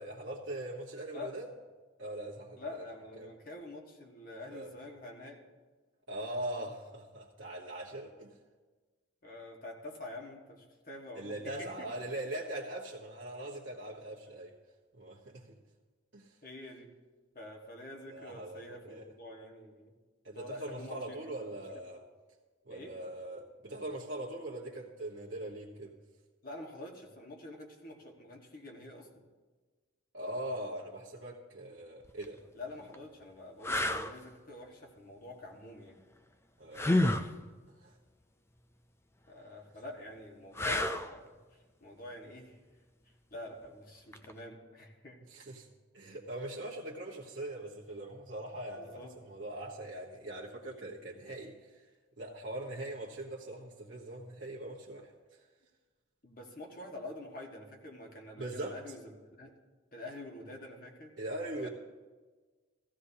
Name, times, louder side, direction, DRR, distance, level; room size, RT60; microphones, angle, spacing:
voice 1, 0.0-1.5 2.0-2.8 3.2-3.3 4.5-4.7 6.1-8.3 11.1-14.5 14.9-15.6 16.1-16.4 18.1-19.1 20.2-22.0 22.6-25.9 30.1-32.4 36.6-37.1 37.8-37.9 45.3-45.7 45.9-51.9 52.2-55.4 58.4-58.8 61.2-61.7, right 1 dB, 60° right, -5 dB, 1.2 m, -41 dB
voice 2, 2.6-5.4 9.2-11.9 16.4-16.9 17.3-19.9 20.3-21.3 22.7-22.9 26.4-29.2 32.5-36.0 39.3-42.6 43.3-45.2 48.7-49.1 56.2-59.5 59.9-61.1 61.6-61.7, left 2 dB, 45° left, 1 dB, 1.5 m, -47 dB
sound 1, 32.0-32.2 32.9-33.0 33.6-34.1 36.7-37.3 40.5-41.2 44.1-44.3, left 1 dB, 10° left, 0.4 m, -29 dB
17.0 x 14.5 x 2.8 m, 1.4 s
head